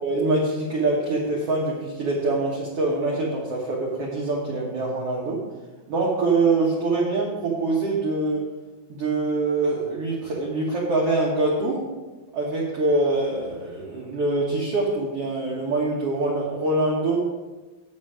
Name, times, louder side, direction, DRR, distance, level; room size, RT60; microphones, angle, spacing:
voice 1, 0.0-5.4 5.9-8.5 8.9-11.8 12.3-17.2, right 2 dB, 60° right, -4 dB, 1.6 m, -24 dB
9.6 x 7.2 x 5.0 m, 1.2 s
omnidirectional pair, 4.7 m